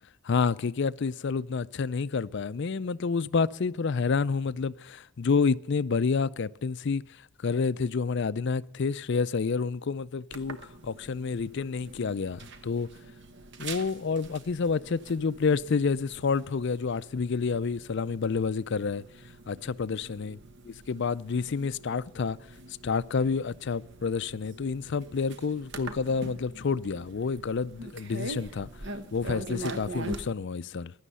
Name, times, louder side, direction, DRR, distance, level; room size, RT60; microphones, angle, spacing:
voice 1, 0.2-7.0 7.4-10.6 10.8-12.9 13.6-19.0 19.5-20.4 20.7-22.4 22.8-28.7 29.1-30.9, left 5 dB, 55° left, 0.4 m, -29 dB
sound 1, 10.3-30.2, right 2 dB, 50° right, 1.1 m, -43 dB
16.0 x 11.0 x 5.5 m
head